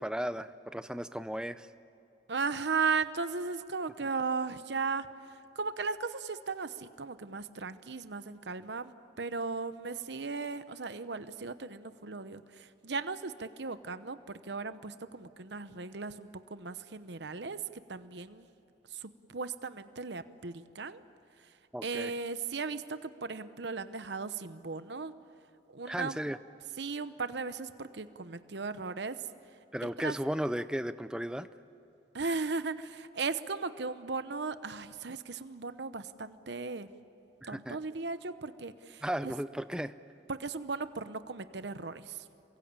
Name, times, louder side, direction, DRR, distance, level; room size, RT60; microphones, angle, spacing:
voice 1, 0.0-1.7 21.7-22.1 25.9-26.4 29.7-31.5 37.4-37.8 39.0-40.0, equal, 5° right, 12 dB, 0.5 m, -35 dB
voice 2, 2.3-5.1 5.5-17.6 17.9-18.4 18.9-21.0 21.8-25.1 25.7-26.2 26.8-29.2 29.8-30.2 32.1-36.9 37.5-39.3 40.3-42.2, right 4 dB, 75° right, 12 dB, 0.9 m, -36 dB
28.0 x 23.0 x 8.9 m, 2.8 s
head